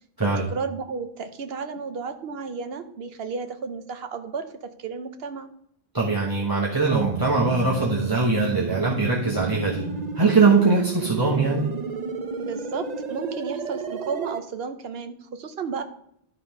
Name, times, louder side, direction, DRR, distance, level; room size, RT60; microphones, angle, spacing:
voice 1, 0.2-4.5 4.8-5.5 12.4-15.8, right 5 dB, 70° right, 9 dB, 1.0 m, -33 dB
voice 2, 5.9-9.8 10.2-11.7, right 3 dB, 20° right, -5 dB, 1.2 m, -21 dB
sound 1, 7.0-14.4, right 5 dB, 50° right, 0.7 m, -32 dB
12.0 x 4.1 x 5.4 m, 0.72 s
omnidirectional pair, 1.0 m